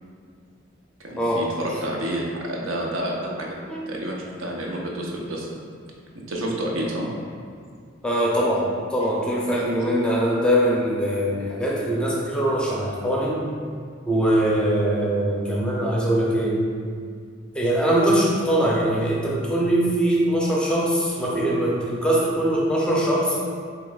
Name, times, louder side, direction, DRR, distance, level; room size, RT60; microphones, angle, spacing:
voice 1, 1.0-3.6 3.9-5.5 6.3-7.1 9.5-9.6, right 1 dB, 80° right, -2 dB, 0.8 m, -29 dB
voice 2, 8.0-13.5 14.1-16.6 17.5-23.4, right 1 dB, 5° left, -4 dB, 0.5 m, -22 dB
7.4 x 3.0 x 2.3 m, 2.1 s
head